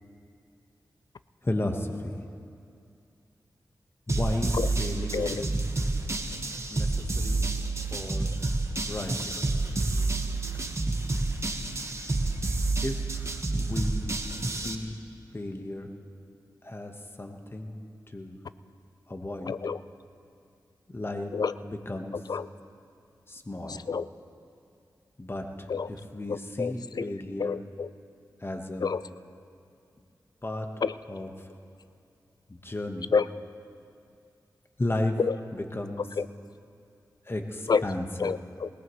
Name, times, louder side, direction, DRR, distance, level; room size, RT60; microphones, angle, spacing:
voice 1, 1.4-1.9 4.1-5.5 6.7-6.9 7.1-7.4 7.9-8.3 8.9-9.2 12.8-12.9 13.6-14.1 14.6-15.0 15.3-15.9 16.6-16.9 17.2-17.8 18.1-18.4 19.1-19.5 20.9-21.3 21.6-22.1 23.3-23.7 25.2-25.5 25.9-27.6 28.4-28.9 30.4-30.7 31.1-31.3 32.5-33.1 34.8-35.2 35.5-36.1 37.3-38.3, left 1 dB, 30° left, 4 dB, 1.3 m, -33 dB
sound 1, 4.1-14.7, right 2 dB, 40° right, 1.2 m, -29 dB
voice 2, 5.1-5.4 19.5-19.8 21.3-21.5 22.3-22.5 23.7-24.1 25.7-25.9 26.3-27.1 27.4-27.9 28.8-29.0 30.8-30.9 33.1-33.3 35.2-35.4 36.0-36.3 37.7-37.9 38.2-38.7, left 5 dB, 60° left, 15 dB, 0.4 m, -28 dB
20.5 x 18.5 x 3.2 m, 2.4 s
cardioid pair, 45°, 8 cm